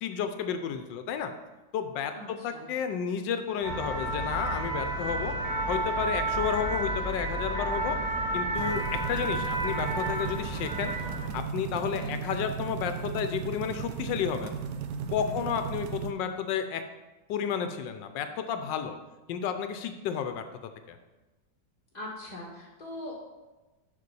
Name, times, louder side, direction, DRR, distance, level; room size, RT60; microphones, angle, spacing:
voice 1, 0.0-1.3 1.7-5.3 5.7-8.0 8.3-10.9 11.3-14.5 15.1-16.8 17.3-19.0 19.3-21.0, left 7 dB, 90° left, 8 dB, 1.4 m, -32 dB
voice 2, 2.1-2.6 12.0-12.2 15.2-15.4 21.9-23.2, left 1 dB, 25° left, -3 dB, 2.2 m, -41 dB
sound 1, 3.6-11.3, right 2 dB, 20° right, 2.5 m, -31 dB
sound 2, 8.5-16.1, right 7 dB, 75° right, 1.2 m, -36 dB
6.6 x 5.7 x 6.9 m, 1.1 s
omnidirectional pair, 1.9 m